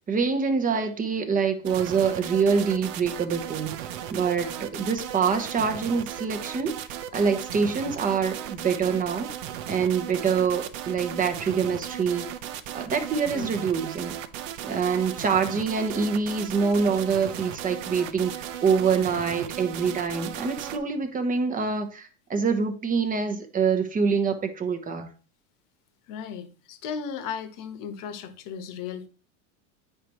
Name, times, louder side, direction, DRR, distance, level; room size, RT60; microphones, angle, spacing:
voice 1, 0.1-6.8 7.1-9.3 9.7-12.2 12.7-14.2 14.6-25.1, right 5 dB, 20° right, 0.9 m, -25 dB
sound 1, 1.7-20.8, right 10 dB, 70° right, 0.9 m, -36 dB
voice 2, 26.1-29.1, left 7 dB, 50° left, 1.2 m, -36 dB
9.0 x 5.1 x 3.0 m
supercardioid pair, 130°, 41 cm